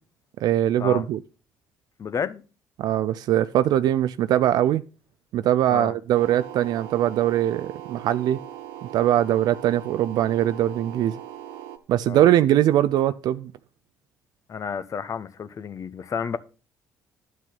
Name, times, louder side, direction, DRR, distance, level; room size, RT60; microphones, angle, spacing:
voice 1, 0.4-1.2 2.8-4.8 5.3-8.4 8.9-11.2 11.9-13.5, right 12 dB, 65° right, 0.4 m, -21 dB
voice 2, 2.0-2.4 5.7-5.9 12.1-12.3 14.5-16.4, left 6 dB, 45° left, 0.9 m, -31 dB
sound 1, 6.1-11.8, right 12 dB, 80° right, 0.9 m, -40 dB
10.5 x 6.2 x 5.8 m
hypercardioid pair, 55°, 8 cm